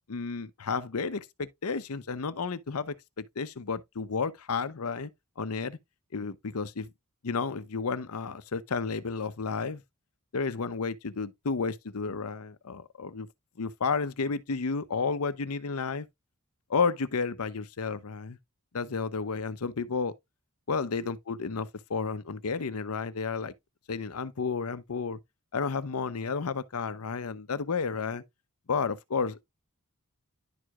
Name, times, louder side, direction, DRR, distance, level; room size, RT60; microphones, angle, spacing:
voice 1, 0.1-5.1 5.4-5.8 6.1-6.9 7.2-9.8 10.3-13.3 13.6-16.1 16.7-18.4 18.7-20.1 20.7-23.5 23.9-25.2 25.5-28.2 28.7-29.4, left 5 dB, 75° left, 0.7 m, -32 dB
11.0 x 4.7 x 2.4 m
head